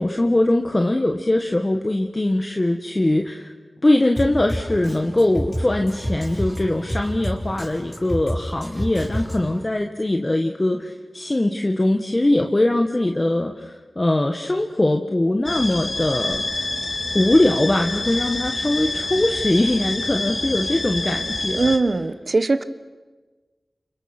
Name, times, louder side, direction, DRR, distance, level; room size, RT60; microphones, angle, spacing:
voice 1, 0.0-3.5 3.8-16.4 17.1-21.7, left 1 dB, 30° left, 3 dB, 1.6 m, -21 dB
Drum kit, 4.2-9.6, equal, 15° left, 6.7 m, -29 dB
sound 1, 15.5-21.8, left 2 dB, 50° left, 2.2 m, -27 dB
voice 2, 21.5-22.6, right 3 dB, 60° right, 13 dB, 1.3 m, -20 dB
30.0 x 28.0 x 6.2 m, 1.3 s
wide cardioid pair, 65°, 0 cm